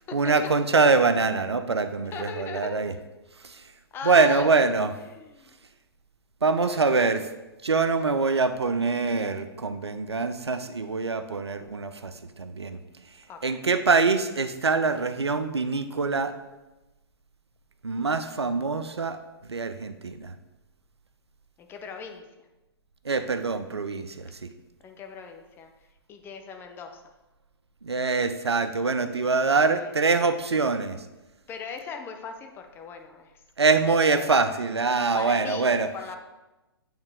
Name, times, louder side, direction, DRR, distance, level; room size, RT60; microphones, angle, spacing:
voice 1, 0.1-2.9 3.4-3.6 4.0-4.9 6.4-7.2 7.6-12.8 13.4-16.3 17.8-19.2 19.4-20.3 23.0-24.5 27.8-31.0 33.6-35.9, right 4 dB, 90° right, 11 dB, 0.5 m, -24 dB
voice 2, 2.1-2.8 3.9-4.7 5.0-5.6 6.5-7.2 13.3-13.6 21.6-22.5 24.8-25.7 26.1-27.1 29.4-29.9 31.5-33.3 34.1-34.3 35.1-36.2, left 5 dB, 15° left, 4 dB, 0.5 m, -39 dB
8.8 x 3.2 x 3.5 m, 1.0 s
figure-of-eight pair, 125°, 13 cm